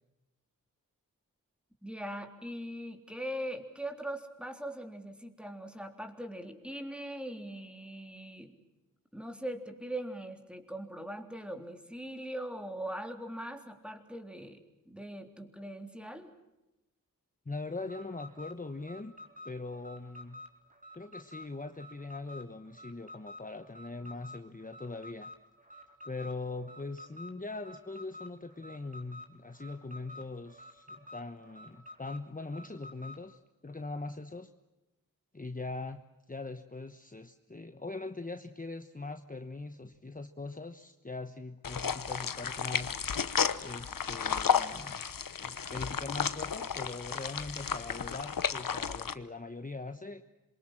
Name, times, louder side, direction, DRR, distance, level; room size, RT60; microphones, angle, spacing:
voice 1, 1.8-8.5 9.1-14.6 14.9-16.3, right 1 dB, 5° right, 5 dB, 3.5 m, -41 dB
voice 2, 17.4-19.1 19.4-20.4 20.9-25.3 26.0-34.5 35.3-43.0 43.6-45.0 45.4-50.2, left 3 dB, 25° left, 8 dB, 1.1 m, -41 dB
Alarm, 17.8-33.3, left 1 dB, 25° right, 3.7 m, -50 dB
sound 1, 41.6-49.1, left 7 dB, 85° left, 1.0 m, -33 dB
27.0 x 23.5 x 7.5 m, 0.98 s
wide cardioid pair, 60°, 33 cm